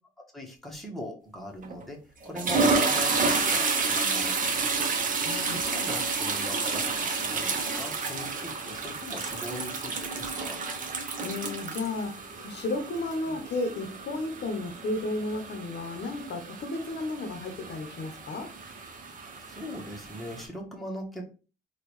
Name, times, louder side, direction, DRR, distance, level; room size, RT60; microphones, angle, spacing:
voice 1, 0.3-2.0 2.2-4.8 5.5-10.6 13.3-13.4 19.5-21.2, equal, ahead, 1.0 m, -40 dB
sound 1, 1.6-1.8 2.2-20.4, right 4 dB, 40° right, 0.7 m, -30 dB
voice 2, 5.2-5.6 11.2-18.5, left 2 dB, 60° left, 0.7 m, -33 dB
3.6 x 2.3 x 3.1 m
cardioid pair, 90°, 20 cm